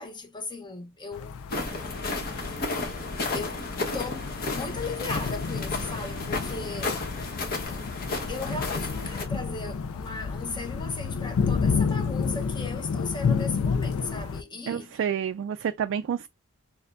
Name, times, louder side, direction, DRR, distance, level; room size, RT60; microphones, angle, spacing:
voice 1, 0.0-1.4 3.3-3.7 3.9-7.0 8.3-14.9, left 3 dB, 20° left, 0.8 m, -37 dB
sound 1, 1.1-14.4, left 5 dB, 70° left, 0.4 m, -31 dB
sound 2, 1.5-9.2, left 3 dB, 45° left, 1.2 m, -33 dB
voice 2, 14.7-16.3, right 8 dB, 60° right, 0.3 m, -29 dB
6.5 x 2.2 x 2.5 m
head